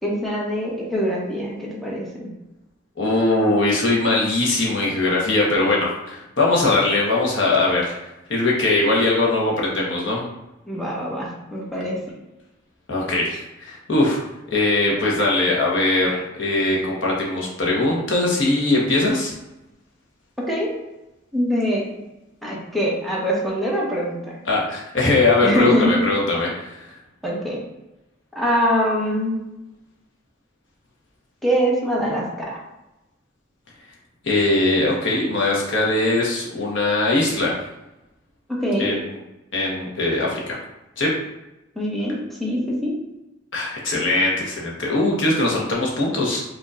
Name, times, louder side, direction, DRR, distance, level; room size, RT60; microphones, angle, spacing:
voice 1, 0.0-2.3 10.7-12.0 20.4-20.7 21.3-21.8 22.4-24.2 25.4-26.0 27.2-27.6 28.3-29.4 31.4-32.6 38.5-39.0 41.7-43.0, equal, ahead, -5 dB, 1.0 m, -23 dB
voice 2, 3.0-7.9 8.3-10.3 12.9-14.2 14.5-19.3 24.5-26.9 34.2-37.6 38.8-39.0 39.5-40.6 41.0-41.1 43.5-46.4, left 2 dB, 70° left, -3 dB, 1.2 m, -21 dB
5.2 x 2.8 x 2.4 m, 0.96 s
head